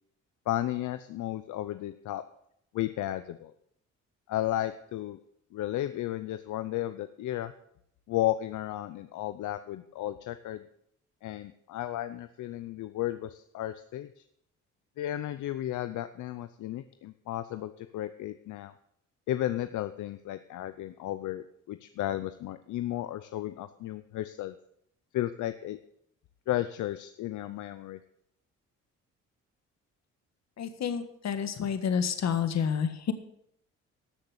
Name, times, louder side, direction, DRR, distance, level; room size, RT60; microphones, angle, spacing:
voice 1, 0.5-2.2 2.7-3.5 4.3-5.2 5.5-7.5 8.1-10.6 11.2-14.2 15.0-18.7 19.3-24.5 25.1-25.8 26.5-28.0, left 13 dB, 75° left, 11 dB, 0.7 m, -33 dB
voice 2, 30.6-33.1, left 7 dB, 60° left, 9 dB, 1.8 m, -29 dB
13.5 x 6.7 x 8.0 m, 0.72 s
cardioid pair, 90°, 30 cm